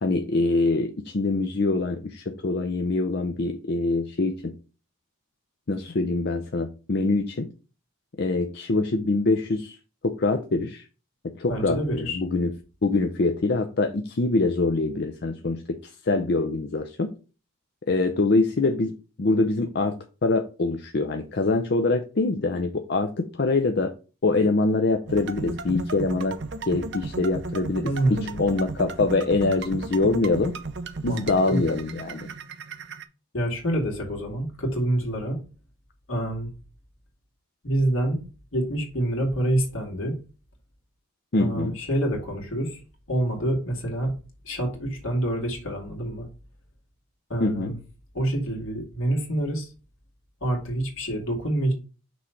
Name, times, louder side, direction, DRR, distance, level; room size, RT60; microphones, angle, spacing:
voice 1, 0.0-4.5 5.7-7.5 8.2-9.8 10.0-10.8 11.2-12.5 12.8-17.1 17.9-18.9 19.2-23.1 23.4-23.9 24.2-26.4 26.6-27.9 28.2-30.5 31.0-32.3 41.3-41.8 47.4-47.7, left 3 dB, 50° left, 6 dB, 0.5 m, -24 dB
voice 2, 11.5-12.2 27.8-28.5 31.0-31.6 33.3-35.4 36.1-36.5 37.6-38.2 38.5-40.2 41.4-42.8 43.1-44.2 44.4-46.3 47.3-47.8 48.1-49.7 50.4-51.7, right 1 dB, 70° left, 0 dB, 2.4 m, -27 dB
sound 1, 25.1-33.0, right 3 dB, 55° right, 0.6 m, -35 dB
6.1 x 3.3 x 5.7 m, 0.34 s
head